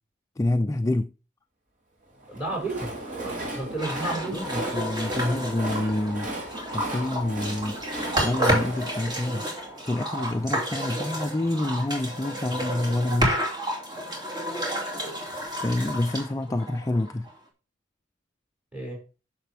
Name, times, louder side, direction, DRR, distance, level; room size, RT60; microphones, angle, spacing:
voice 1, 0.4-1.1 4.3-7.8 8.2-9.5 9.8-13.4 15.6-17.3, left 1 dB, 15° left, 0.4 m, -27 dB
Train, 2.2-10.3, right 1 dB, 40° right, 3.3 m, -37 dB
voice 2, 2.3-4.5 18.7-19.0, right 2 dB, 5° right, 5.8 m, -32 dB
sound 1, 3.8-17.3, equal, 20° right, 2.7 m, -31 dB
10.0 x 6.8 x 3.5 m
head